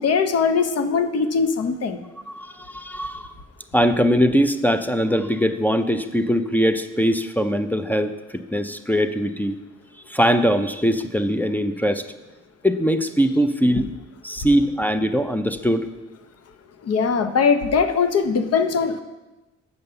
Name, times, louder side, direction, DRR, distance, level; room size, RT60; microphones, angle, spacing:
voice 1, 0.0-2.0 16.8-19.0, left 5 dB, 55° left, 9 dB, 0.8 m, -21 dB
voice 2, 2.3-3.3 3.7-9.6 10.1-12.1 12.6-13.9 14.2-15.8, equal, 5° left, 9 dB, 0.4 m, -21 dB
7.0 x 5.3 x 6.7 m, 1.1 s
cardioid pair, 90°, 30 cm